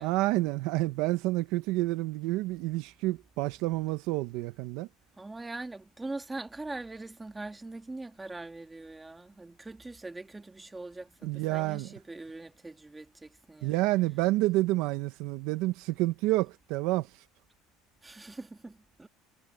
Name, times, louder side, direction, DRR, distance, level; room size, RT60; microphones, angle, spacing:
voice 1, 0.0-4.9 11.2-11.9 13.6-17.1, right 18 dB, 60° right, 0.8 m, -29 dB
voice 2, 5.2-14.2 18.0-19.1, right 2 dB, 10° right, 1.7 m, -42 dB
cardioid pair, 175°, 0 cm